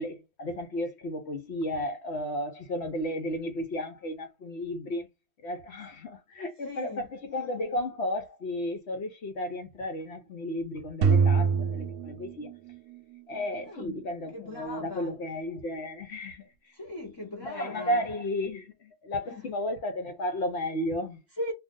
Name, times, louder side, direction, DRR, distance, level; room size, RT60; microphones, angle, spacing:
voice 1, 0.0-5.1 5.4-12.5 13.3-16.5 17.4-21.2, left 1 dB, 55° left, 0.9 m, -33 dB
voice 2, 6.6-7.1 13.7-13.9 14.3-15.2 16.7-18.1 19.3-19.5 21.4-21.5, left 1 dB, 25° left, 0.6 m, -38 dB
sound 1, 11.0-13.2, right 5 dB, 85° right, 1.1 m, -25 dB
2.5 x 2.5 x 3.6 m
omnidirectional pair, 1.6 m